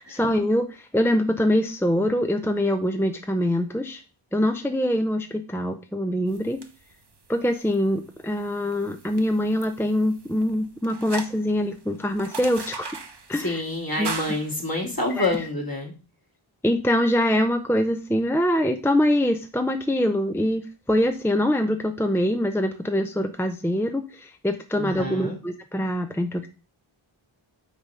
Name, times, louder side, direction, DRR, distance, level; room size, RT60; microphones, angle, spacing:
voice 1, 0.0-4.0 4.3-6.6 7.3-12.9 13.3-13.6 14.0-14.1 15.2-15.3 16.6-26.5, left 1 dB, 5° left, 7 dB, 0.6 m, -24 dB
sound 1, 6.3-15.4, right 4 dB, 55° right, 1.0 m, -40 dB
voice 2, 13.3-15.9 24.8-25.4, left 2 dB, 45° left, 0 dB, 2.5 m, -28 dB
6.2 x 4.1 x 6.3 m, 0.34 s
wide cardioid pair, 40°, 49 cm